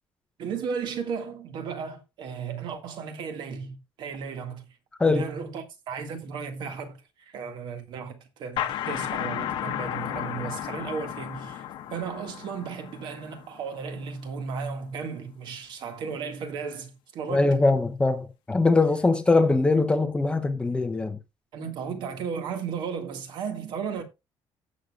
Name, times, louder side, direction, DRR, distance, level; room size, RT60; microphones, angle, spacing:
voice 1, 0.4-4.7 5.0-7.0 7.3-11.7 11.9-17.6 21.5-24.0, right 6 dB, 55° right, 1.9 m, -35 dB
sound 1, 8.6-14.0, left 11 dB, 60° left, 1.1 m, -33 dB
voice 2, 17.3-21.2, left 3 dB, 10° left, 0.7 m, -22 dB
17.5 x 6.5 x 2.4 m
cardioid pair, 175°, 9 cm